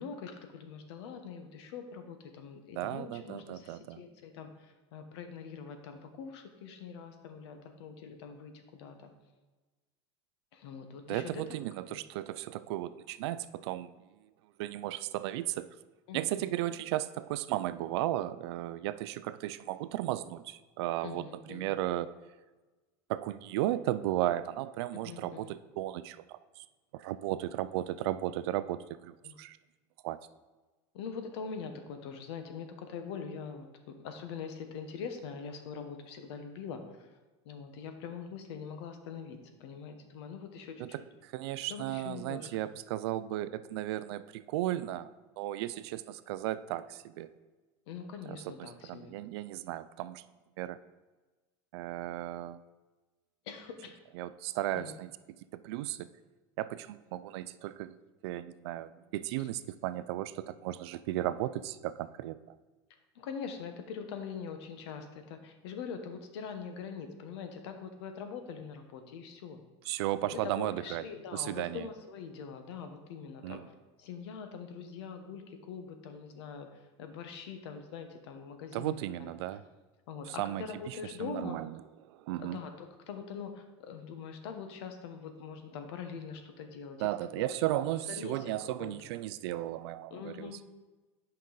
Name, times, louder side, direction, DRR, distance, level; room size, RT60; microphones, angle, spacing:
voice 1, 0.0-9.1 10.5-12.0 16.1-16.5 21.0-21.7 25.0-25.5 29.2-29.4 30.9-37.1 37.4-40.9 41.7-42.5 47.9-49.1 53.4-54.0 54.7-54.9 59.4-59.5 63.1-69.6 70.3-73.6 74.0-79.3 80.1-81.6 82.4-87.1 87.6-88.4 88.8-89.0 90.1-90.6, left 6 dB, 75° left, 7 dB, 1.0 m, -43 dB
voice 2, 2.8-4.0 11.1-13.9 14.6-15.7 16.1-22.1 23.1-26.6 26.9-29.6 30.0-30.2 40.8-45.1 45.4-47.3 48.3-50.2 50.6-50.8 51.7-52.6 54.1-55.1 55.5-56.1 56.6-57.9 58.2-62.4 69.9-71.0 71.3-71.9 73.4-73.7 78.7-79.6 80.3-80.9 81.2-81.7 82.0-82.6 87.0-90.6, right 14 dB, 70° right, 14 dB, 0.4 m, -35 dB
8.7 x 5.3 x 3.9 m, 1.2 s
supercardioid pair, 175°, 14 cm